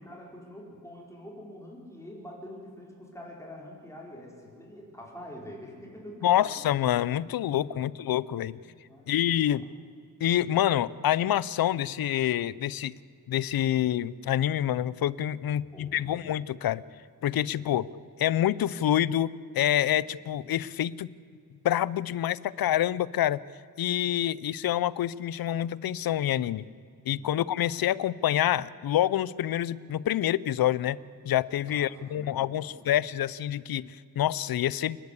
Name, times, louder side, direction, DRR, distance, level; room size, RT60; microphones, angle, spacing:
voice 1, 0.0-6.8 7.6-8.0 8.6-9.2 15.4-16.3 27.1-27.4 31.7-33.0, left 1 dB, 10° left, -2 dB, 4.6 m, -46 dB
voice 2, 6.2-8.6 9.1-9.7 10.2-12.9 13.3-16.8 17.2-17.9 18.2-21.1 21.6-23.4 23.8-26.7 27.1-31.0 31.2-35.0, left 11 dB, 80° left, 20 dB, 0.6 m, -27 dB
29.0 x 11.0 x 8.2 m, 2.3 s
cardioid pair, 95°, 36 cm